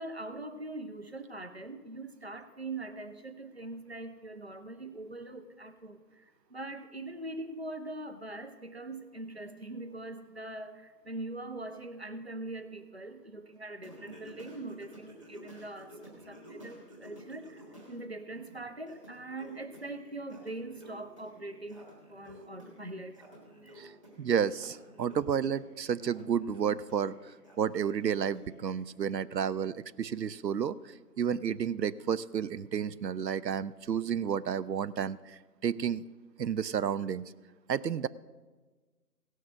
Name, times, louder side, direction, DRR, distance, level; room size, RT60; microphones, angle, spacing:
voice 1, 0.0-23.2 23.6-23.8, right 2 dB, 40° right, 9 dB, 0.5 m, -42 dB
Singing, 13.8-18.0 18.3-28.7, equal, 20° right, 1.6 m, -52 dB
voice 2, 24.2-36.0 36.4-37.2 37.7-38.1, right 8 dB, 85° right, 17 dB, 0.6 m, -31 dB
16.5 x 6.5 x 6.3 m, 1.3 s
figure-of-eight pair, 170°, 48 cm